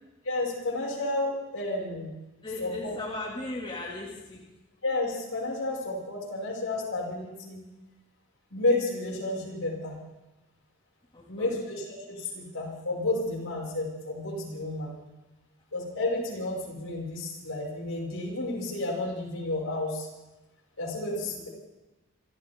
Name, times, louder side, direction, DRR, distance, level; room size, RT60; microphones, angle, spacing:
voice 1, 0.2-2.1 2.6-2.9 4.8-7.6 8.5-9.9 11.3-14.9 15.7-20.1 20.8-21.5, left 2 dB, 70° left, -4 dB, 6.6 m, -31 dB
voice 2, 2.4-4.4 11.1-11.6 21.2-21.5, left 2 dB, 20° left, -4 dB, 2.7 m, -37 dB
27.0 x 14.0 x 3.9 m, 1.0 s
head